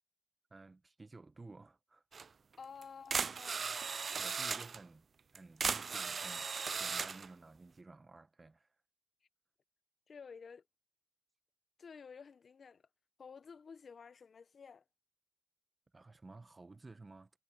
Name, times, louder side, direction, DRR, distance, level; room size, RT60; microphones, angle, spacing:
voice 1, 0.5-2.4 4.2-5.0 5.3-8.7 15.9-17.3, right 3 dB, 25° right, 1.3 m, -54 dB
sound 1, 2.1-2.3 2.8-2.9 3.1-4.8 5.3-7.3, right 5 dB, 40° right, 0.3 m, -37 dB
voice 2, 2.6-3.7 10.1-10.6 11.8-12.8 13.2-14.8, left 6 dB, 45° left, 1.2 m, -52 dB
cardioid pair, 90°, 0 cm